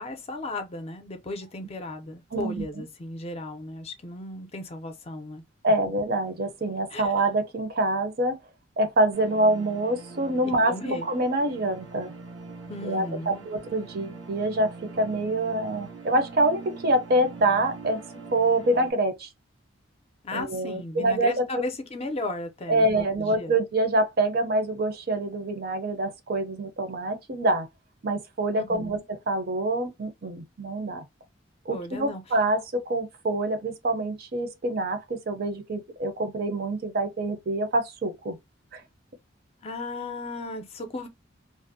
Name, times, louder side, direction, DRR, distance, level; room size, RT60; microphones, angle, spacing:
voice 1, 0.0-5.4 6.9-7.1 10.4-11.1 12.7-13.4 20.2-23.5 28.6-29.0 31.7-32.2 39.6-41.1, left 2 dB, 30° left, 0.5 m, -35 dB
voice 2, 2.3-2.8 5.6-8.4 8.8-12.1 12.8-18.0 18.3-19.3 20.3-21.4 22.7-27.7 28.0-31.0 31.7-38.4 38.7-38.8, right 1 dB, 50° right, 0.6 m, -26 dB
sound 1, 9.1-18.9, right 4 dB, 85° right, 0.8 m, -43 dB
2.5 x 2.0 x 2.6 m
head